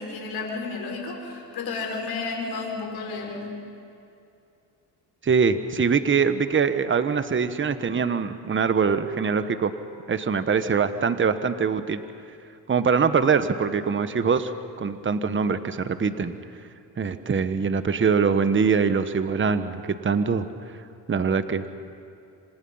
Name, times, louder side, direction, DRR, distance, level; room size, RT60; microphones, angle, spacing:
voice 1, 0.0-3.6, left 4 dB, 65° left, 1 dB, 5.8 m, -32 dB
voice 2, 5.2-9.7 10.1-12.0 12.7-14.5 14.8-16.4 17.0-20.5 21.1-21.6, right 5 dB, 30° right, 10 dB, 1.2 m, -23 dB
27.0 x 26.0 x 5.7 m, 2.6 s
cardioid pair, 95°, 40 cm